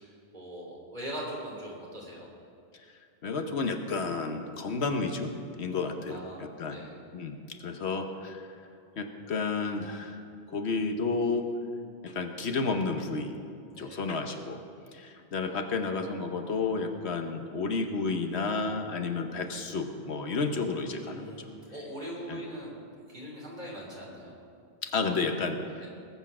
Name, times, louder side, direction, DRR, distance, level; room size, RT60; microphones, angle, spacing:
voice 1, 0.3-2.3 5.9-7.0 13.7-14.0 20.9-22.7 23.1-24.4 25.8-25.9, right 1 dB, 45° right, -3 dB, 3.4 m, -41 dB
voice 2, 3.2-5.3 5.6-6.2 6.6-6.8 7.1-8.4 9.0-10.2 10.5-11.5 12.0-13.4 13.8-14.6 14.9-21.5 22.3-22.4 24.8-25.6, left 4 dB, 80° left, 5 dB, 1.3 m, -31 dB
19.5 x 8.2 x 6.0 m, 2.3 s
omnidirectional pair, 1.1 m